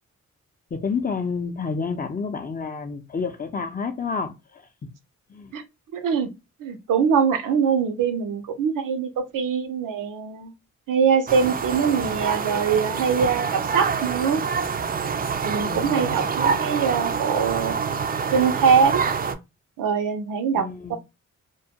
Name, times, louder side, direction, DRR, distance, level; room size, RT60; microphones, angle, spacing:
voice 1, 0.7-4.9 5.3-5.5 15.6-16.4 20.6-21.0, left 5 dB, 30° left, 0.5 m, -30 dB
voice 2, 5.9-6.3 6.6-10.5 10.9-14.4 15.4-17.7 18.3-19.0 19.8-21.0, right 6 dB, 85° right, 0.5 m, -23 dB
sound 1, 11.3-19.3, right 6 dB, 30° right, 0.3 m, -26 dB
2.2 x 2.1 x 2.7 m
cardioid pair, 65°, 31 cm